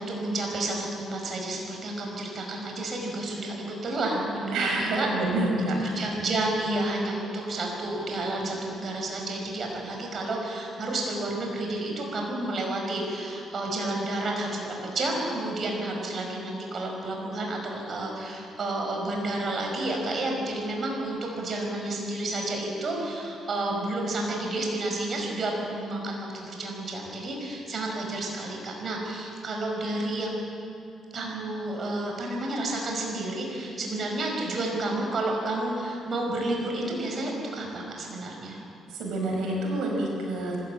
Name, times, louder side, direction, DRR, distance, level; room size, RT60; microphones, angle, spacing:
voice 1, 0.0-5.1 5.8-30.4 31.1-38.6, right 2 dB, 50° right, 0 dB, 5.3 m, -30 dB
voice 2, 4.5-6.0 38.9-40.6, right 2 dB, 85° right, 0 dB, 5.5 m, -28 dB
25.5 x 14.0 x 8.8 m, 2.6 s
cardioid pair, 90°, 0 cm